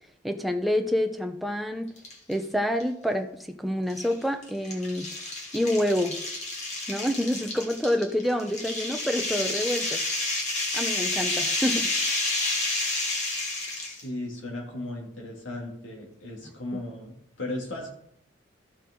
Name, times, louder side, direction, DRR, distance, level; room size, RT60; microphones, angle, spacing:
voice 1, 0.2-1.9 2.3-5.1 5.5-6.2 6.9-10.0 10.7-12.2, left 1 dB, ahead, 4 dB, 0.7 m, -27 dB
sound 1, 2.0-2.4 2.8-2.9 3.9-14.0, left 2 dB, 35° left, 2.0 m, -30 dB
voice 2, 13.9-17.1 17.4-17.9, left 1 dB, 75° left, -1 dB, 2.7 m, -36 dB
14.0 x 6.4 x 3.8 m, 0.74 s
head